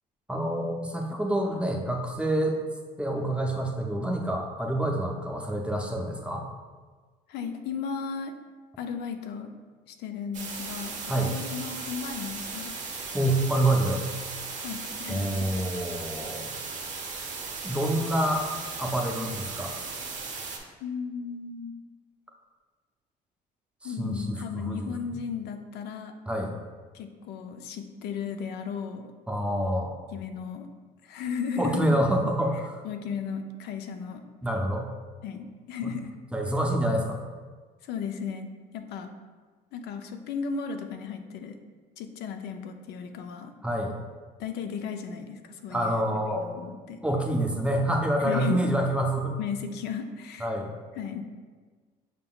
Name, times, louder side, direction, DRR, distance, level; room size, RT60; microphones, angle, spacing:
voice 1, 0.3-2.6 3.0-6.5 11.1-11.3 13.1-14.0 15.1-16.6 17.6-18.5 18.8-19.8 23.8-25.0 26.3-26.5 29.3-29.9 31.6-32.8 34.4-34.9 35.8-35.9 36.3-37.2 43.6-44.0 45.7-46.5 47.0-49.4 50.4-50.7, right 1 dB, 5° right, 1 dB, 0.5 m, -27 dB
voice 2, 7.3-8.3 8.8-9.5 9.9-12.7 14.6-15.5 20.8-21.8 23.8-26.2 26.9-29.1 30.1-30.7 31.0-32.0 32.8-34.2 35.2-36.1 37.8-39.1 39.7-41.6 42.0-43.5 44.4-46.0 46.3-47.0 48.2-48.6 49.4-50.5 51.0-51.2, left 6 dB, 75° left, 6 dB, 0.4 m, -35 dB
sound 1, 10.3-20.6, right 4 dB, 45° right, 0.8 m, -37 dB
5.7 x 3.7 x 2.3 m, 1.5 s
cardioid pair, 110°, 17 cm